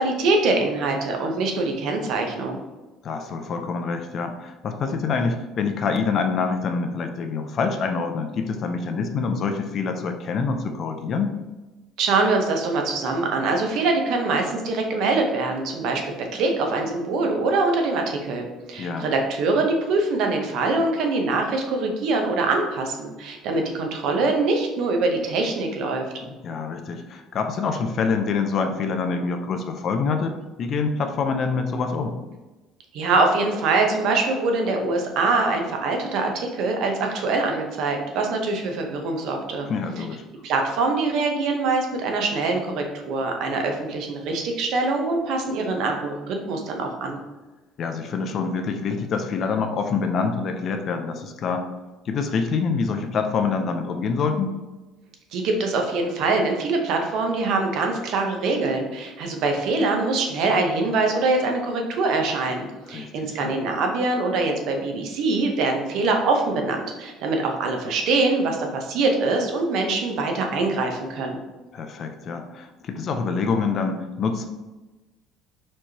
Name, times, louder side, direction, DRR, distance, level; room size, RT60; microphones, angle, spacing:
voice 1, 0.0-2.6 12.0-26.0 32.9-39.7 40.4-47.2 55.3-71.4, right 3 dB, 55° right, 3 dB, 0.7 m, -24 dB
voice 2, 3.0-11.4 18.8-19.1 26.2-32.2 39.7-40.2 47.8-51.7 52.1-54.5 62.9-63.6 71.7-74.5, left 5 dB, 35° left, 6 dB, 0.3 m, -26 dB
4.4 x 3.1 x 2.8 m, 1.1 s
cardioid pair, 170°, 0 cm